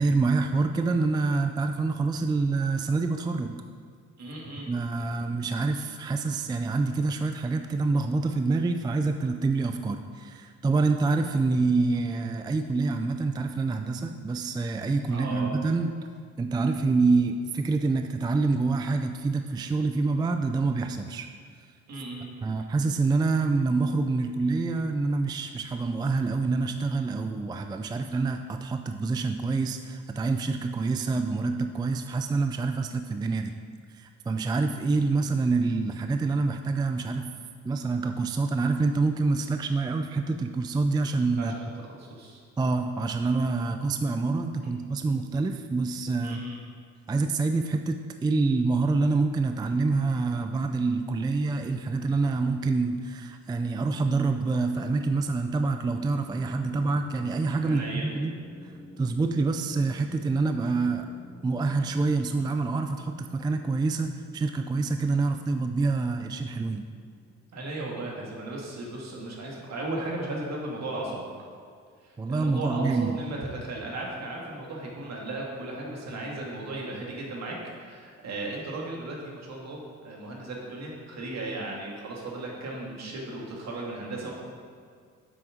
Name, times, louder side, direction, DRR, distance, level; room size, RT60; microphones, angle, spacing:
voice 1, 0.0-3.6 4.7-15.9 16.4-21.3 22.4-33.6 33.9-37.3 37.6-41.5 42.6-46.4 47.1-58.4 59.0-61.1 61.4-66.8 72.2-73.2, right 3 dB, 15° right, 6 dB, 0.3 m, -26 dB
voice 2, 4.2-4.7 15.1-15.5 21.9-22.3 41.4-42.4 44.6-44.9 46.2-46.6 57.6-58.1 67.5-71.3 72.0-84.3, right 2 dB, 60° right, -2 dB, 2.1 m, -36 dB
sound 1, 55.8-68.0, equal, 20° left, 1.9 m, -50 dB
7.7 x 6.1 x 5.0 m, 2.1 s
cardioid pair, 90°, 30 cm